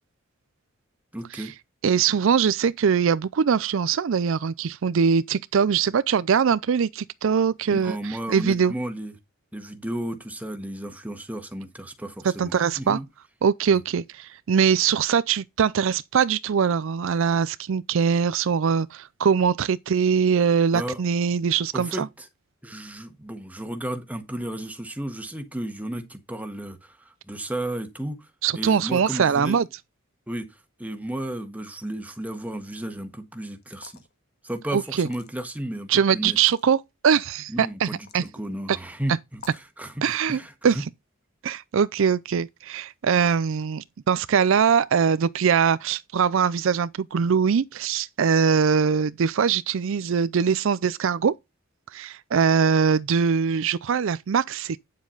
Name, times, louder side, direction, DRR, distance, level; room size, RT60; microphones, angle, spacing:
voice 1, 1.1-1.5 7.7-9.2 9.5-13.1 13.7-13.8 20.7-21.0 21.7-22.3 22.6-28.3 28.5-29.6 30.3-34.0 34.4-36.4 37.5-40.8, right 1 dB, 5° right, 1.4 m, -33 dB
voice 2, 1.8-8.7 12.4-13.0 13.4-22.1 28.4-29.7 34.7-35.1 35.9-38.2 38.7-38.8 40.0-40.8 41.4-51.4 51.9-54.8, right 6 dB, 65° right, 0.4 m, -22 dB
sound 1, 33.6-34.1 35.0-35.6 36.3-36.6 37.9-38.3 39.3-39.7, left 6 dB, 50° left, 1.6 m, -48 dB
9.3 x 7.3 x 3.9 m
head